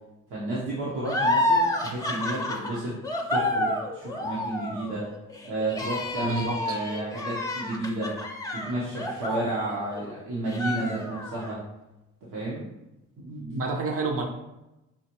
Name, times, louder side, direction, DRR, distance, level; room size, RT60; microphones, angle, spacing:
voice 1, 0.3-2.9 3.3-5.0 5.4-8.1 8.5-11.6 12.3-12.6, right 2 dB, 80° right, -7 dB, 1.0 m, -31 dB
sound 1, 1.0-10.1 10.5-11.5, left 1 dB, 10° left, 0.6 m, -29 dB
voice 2, 6.2-6.8 13.2-14.3, right 3 dB, 50° right, 2 dB, 0.8 m, -29 dB
5.7 x 2.5 x 2.9 m, 0.96 s
cardioid pair, 90°, 30 cm